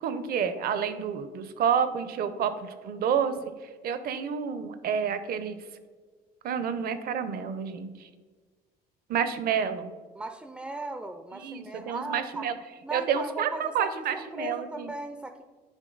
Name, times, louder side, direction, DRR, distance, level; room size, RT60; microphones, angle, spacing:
voice 1, 0.0-3.3 3.8-5.6 6.4-8.1 9.1-9.9 11.3-12.5 12.9-14.9, right 7 dB, 65° right, 11 dB, 0.6 m, -29 dB
voice 2, 10.1-12.5 12.8-15.4, right 2 dB, 5° right, 7 dB, 0.3 m, -37 dB
9.9 x 3.5 x 3.9 m, 1.4 s
cardioid pair, 110°, 17 cm